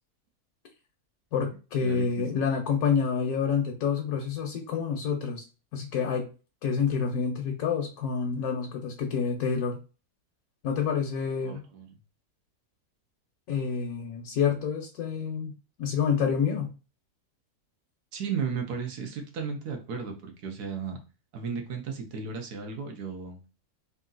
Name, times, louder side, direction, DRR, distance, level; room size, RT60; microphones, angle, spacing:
voice 1, 1.3-5.4 5.7-6.3 6.6-9.8 10.6-11.6 13.5-15.5 15.8-16.7, left 6 dB, 75° left, 3 dB, 1.2 m, -28 dB
voice 2, 11.4-11.9 18.1-21.0 21.3-23.4, right 6 dB, 85° right, 4 dB, 1.5 m, -34 dB
3.7 x 2.8 x 3.8 m, 0.32 s
omnidirectional pair, 1.6 m